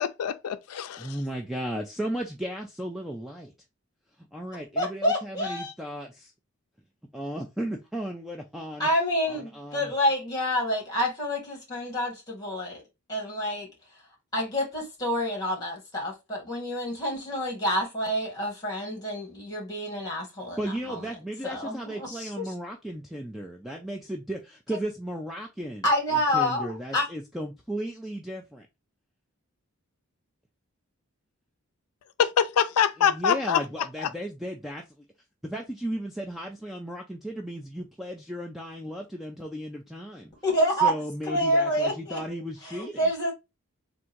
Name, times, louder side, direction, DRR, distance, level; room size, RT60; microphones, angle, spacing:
voice 1, 0.0-1.2 32.2-33.6, left 8 dB, 85° left, 0.4 m, -24 dB
voice 2, 1.0-3.5 4.3-6.3 7.1-8.9 9.3-9.9 20.6-25.9 26.1-28.7 33.0-34.8 35.4-40.3 40.8-43.1, right 1 dB, ahead, 0.3 m, -35 dB
voice 3, 4.8-5.7 8.8-12.8 13.1-13.7 14.3-21.0 21.4-22.4 25.8-27.1 40.4-40.9 41.3-43.3, equal, 15° left, 1.8 m, -28 dB
3.6 x 2.6 x 4.4 m
head